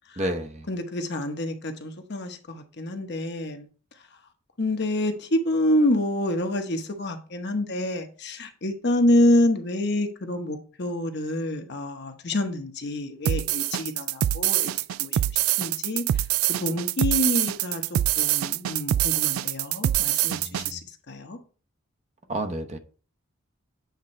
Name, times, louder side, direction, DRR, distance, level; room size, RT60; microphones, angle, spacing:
voice 1, 0.2-0.7 20.3-20.8 22.3-22.8, right 1 dB, 35° right, 0.8 m, -31 dB
voice 2, 0.7-3.7 4.6-14.7 15.0-15.2 15.6-16.0 16.6-17.8 18.2-20.8 21.1-21.4, left 1 dB, 55° left, 1.0 m, -27 dB
sound 1, 13.3-20.7, right 13 dB, 90° right, 0.3 m, -24 dB
8.2 x 3.6 x 4.3 m
head